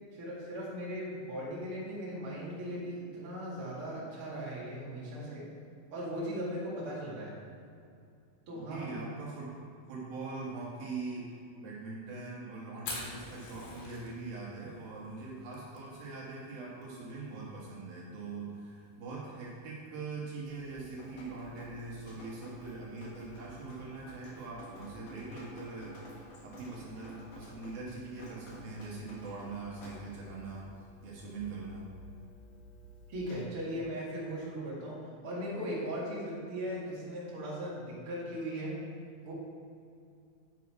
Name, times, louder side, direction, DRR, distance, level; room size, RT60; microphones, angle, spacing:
voice 1, 0.1-5.5 5.9-7.4 8.5-8.9 33.1-38.8 39.2-39.3, equal, 40° right, -7 dB, 2.8 m, -38 dB
voice 2, 8.5-9.5 9.9-25.9 26.4-30.7 31.0-31.8, right 3 dB, 75° right, -5 dB, 3.2 m, -42 dB
Fire, 12.7-22.5, left 3 dB, 85° left, 3.5 m, -49 dB
Drip, 20.4-33.4, equal, 65° left, 3.2 m, -52 dB
8.5 x 6.7 x 4.7 m, 2.4 s
omnidirectional pair, 4.3 m